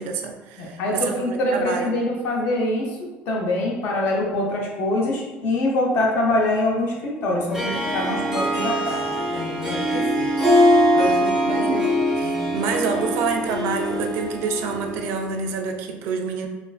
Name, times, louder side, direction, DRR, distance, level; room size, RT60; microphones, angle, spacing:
voice 1, 0.0-1.9 11.4-16.5, right 5 dB, 60° right, 4 dB, 0.3 m, -28 dB
voice 2, 0.6-3.0 3.3-9.0 9.3-10.3 10.9-11.8 12.2-12.4, left 1 dB, 50° left, -2 dB, 0.6 m, -24 dB
Harp, 7.5-15.2, equal, 10° right, 0.5 m, -22 dB
3.1 x 2.4 x 2.3 m, 1.1 s
cardioid pair, 170°, 4 cm